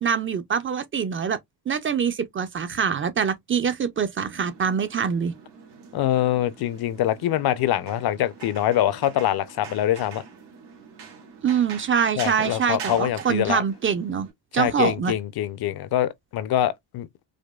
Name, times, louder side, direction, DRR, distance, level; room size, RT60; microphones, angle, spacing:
voice 1, 0.0-1.4 1.7-5.3 11.4-14.3 14.5-15.1, right 7 dB, 30° right, 0.4 m, -24 dB
sound 1, 4.2-14.3, right 6 dB, 80° right, 1.9 m, -43 dB
voice 2, 5.9-10.2 12.2-13.6 14.5-17.1, left 12 dB, 65° left, 0.6 m, -24 dB
5.0 x 2.1 x 2.3 m
cardioid pair, 140°, 40 cm